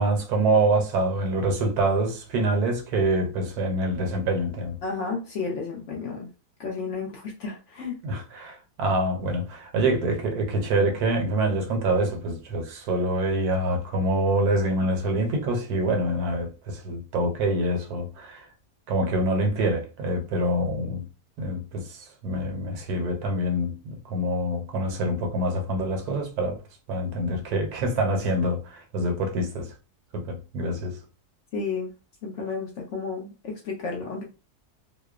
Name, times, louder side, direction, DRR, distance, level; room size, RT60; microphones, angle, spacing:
voice 1, 0.0-4.8 8.0-18.4 18.9-21.0 21.4-26.6 26.9-29.7 30.1-31.0, right 1 dB, 75° right, 1.2 m, -26 dB
voice 2, 4.8-6.3 6.6-8.0 31.5-31.9 32.2-34.2, left 4 dB, 65° left, 0.8 m, -32 dB
2.8 x 2.0 x 2.3 m
omnidirectional pair, 1.6 m